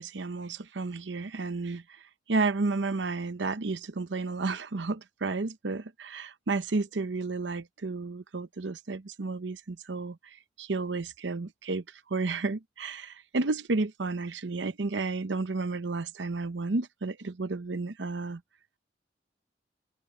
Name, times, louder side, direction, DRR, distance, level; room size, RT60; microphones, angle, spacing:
voice 1, 0.0-1.8 2.3-10.2 10.6-11.8 12.1-18.4, right 3 dB, 85° right, 0.8 m, -32 dB
head